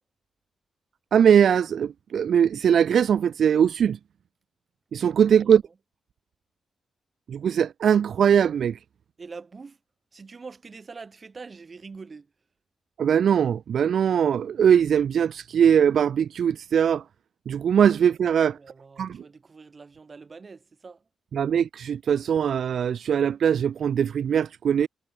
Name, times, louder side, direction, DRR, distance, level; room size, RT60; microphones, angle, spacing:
voice 1, 1.1-4.0 4.9-5.6 7.3-8.8 13.0-17.0 17.5-18.6 19.0-19.2 21.3-24.9, right 8 dB, 70° right, 0.4 m, -21 dB
voice 2, 9.2-9.8 10.1-12.3 18.3-21.0, right 4 dB, 45° right, 5.1 m, -44 dB
supercardioid pair, 45°, 0 cm